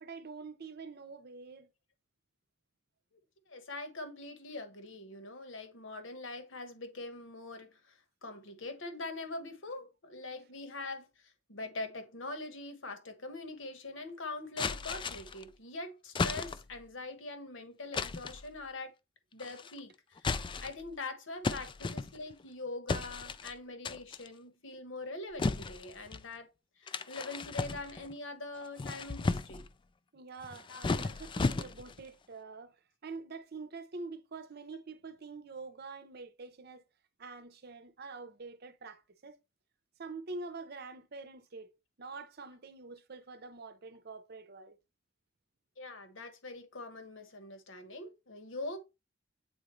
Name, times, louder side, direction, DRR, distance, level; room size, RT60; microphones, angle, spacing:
voice 1, 0.0-1.7 30.1-32.8 33.0-36.8 37.2-39.4 40.0-41.7 42.0-44.8, right 3 dB, 55° right, 0.7 m, -46 dB
voice 2, 3.5-7.9 8.2-18.9 19.3-26.5 26.8-29.6 30.7-30.8 45.8-48.8, left 2 dB, 75° left, 1.3 m, -43 dB
sound 1, 14.6-15.4 16.2-16.8 17.9-18.4 19.4-19.8 20.2-20.9 21.4-22.4 22.9-23.5 23.9-24.3 25.4-26.3 26.9-28.1 28.6-29.7 30.4-32.0, left 4 dB, 25° left, 0.3 m, -35 dB
8.5 x 3.8 x 3.2 m
head